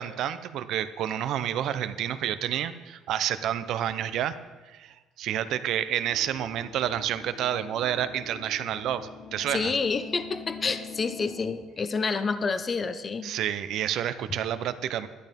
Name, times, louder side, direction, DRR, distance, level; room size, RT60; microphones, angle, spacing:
voice 1, 0.0-4.3 4.7-9.7 13.2-15.1, right 10 dB, 65° right, 12 dB, 0.8 m, -29 dB
sound 1, 6.0-11.5, left 4 dB, 75° left, 3.8 m, -45 dB
voice 2, 9.5-13.3, left 4 dB, 30° left, 11 dB, 0.8 m, -28 dB
12.0 x 11.5 x 5.3 m, 1.3 s
cardioid pair, 115°, 0 cm